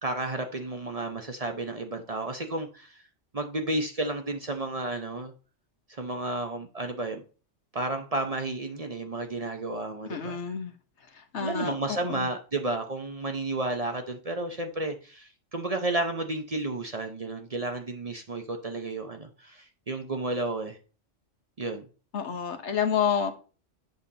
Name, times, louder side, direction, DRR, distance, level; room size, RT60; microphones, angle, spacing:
voice 1, 0.0-3.0 3.3-5.3 5.9-7.2 7.7-10.4 11.4-20.8 21.6-21.8, right 2 dB, 35° right, 0.7 m, -32 dB
voice 2, 10.1-10.7 11.3-12.3 22.1-23.3, left 7 dB, 70° left, 1.3 m, -29 dB
8.0 x 6.9 x 2.8 m
omnidirectional pair, 1.2 m